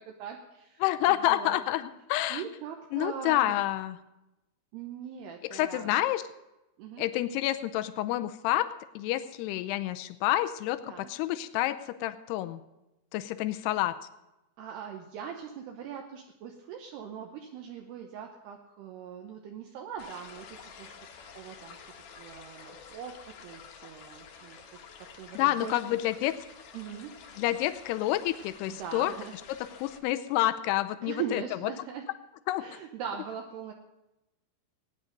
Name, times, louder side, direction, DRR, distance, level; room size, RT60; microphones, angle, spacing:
voice 1, 0.0-1.6 2.3-3.6 4.7-6.0 6.8-7.1 10.8-11.1 14.6-20.9 21.3-21.9 22.2-24.6 25.0-26.0 26.7-27.1 28.7-29.3 31.0-32.1 32.6-33.7, right 8 dB, 75° right, 2 dB, 2.8 m, -41 dB
voice 2, 0.8-2.4 2.9-4.0 5.5-6.2 7.0-8.7 9.0-12.6 13.1-13.9 25.4-26.4 27.4-29.1 29.8-31.4 32.5-32.6, left 14 dB, 80° left, 10 dB, 2.5 m, -28 dB
sound 1, 20.0-30.0, left 6 dB, 65° left, 2.3 m, -50 dB
18.5 x 9.6 x 5.2 m, 0.96 s
omnidirectional pair, 5.2 m